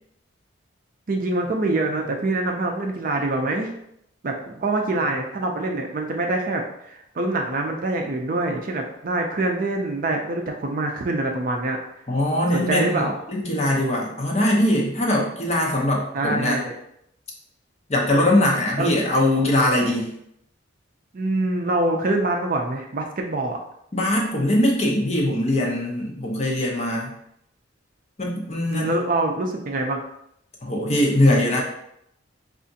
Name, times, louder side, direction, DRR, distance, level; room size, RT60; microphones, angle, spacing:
voice 1, 1.1-3.7 4.2-11.8 12.5-13.2 16.1-16.7 18.8-18.9 21.1-23.6 28.7-30.0, right 2 dB, 40° right, 2 dB, 0.4 m, -25 dB
voice 2, 12.1-16.6 17.9-20.1 23.9-27.1 28.2-29.0 30.6-31.6, left 1 dB, 30° left, -2 dB, 0.7 m, -21 dB
4.7 x 2.4 x 2.7 m, 0.75 s
head